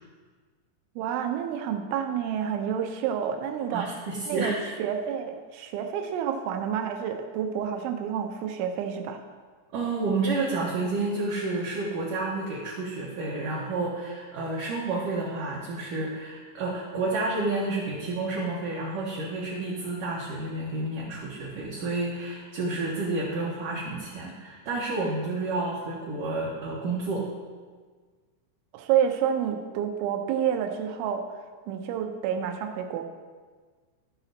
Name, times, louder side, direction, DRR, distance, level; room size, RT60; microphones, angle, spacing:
voice 1, 1.0-4.0 4.3-9.2 28.7-31.3 31.7-33.1, right 8 dB, 90° right, 5 dB, 3.2 m, -29 dB
voice 2, 3.7-4.6 9.7-27.3, right 3 dB, 70° right, -5 dB, 2.1 m, -30 dB
14.5 x 5.8 x 4.0 m, 1.5 s
omnidirectional pair, 5.3 m